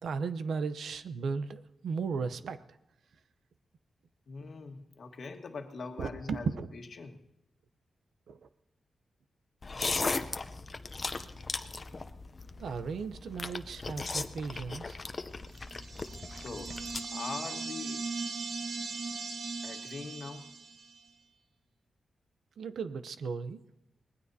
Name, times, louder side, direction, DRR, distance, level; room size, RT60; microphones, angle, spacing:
voice 1, 0.0-2.6 6.0-6.7 8.3-8.4 12.6-15.0 22.6-23.6, right 5 dB, 80° right, 12 dB, 0.7 m, -35 dB
voice 2, 4.3-7.2 16.4-16.7 17.1-18.1 19.6-20.5, left 4 dB, 60° left, 4 dB, 1.6 m, -42 dB
sound 1, 9.6-17.0, left 3 dB, 35° left, 0.7 m, -37 dB
sound 2, 15.6-21.0, right 4 dB, 55° right, 1.0 m, -39 dB
25.5 x 19.5 x 2.8 m, 0.87 s
wide cardioid pair, 105°, 0 cm